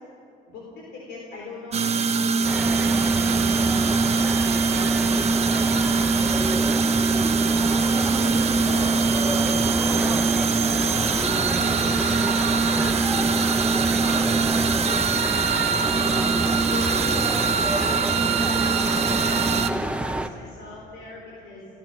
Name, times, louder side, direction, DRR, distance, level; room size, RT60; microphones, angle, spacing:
voice 1, 0.5-4.3 4.6-5.4 5.7-6.1 8.1-10.4 10.8-12.4 13.0-18.1 18.5-21.7, left 2 dB, 85° left, -3 dB, 4.1 m, -41 dB
sound 1, 1.7-19.7, right 5 dB, 40° right, 1.0 m, -22 dB
sound 2, 2.4-20.3, right 1 dB, 5° right, 0.8 m, -28 dB
29.5 x 15.0 x 6.3 m, 2.7 s
cardioid pair, 110°, 17 cm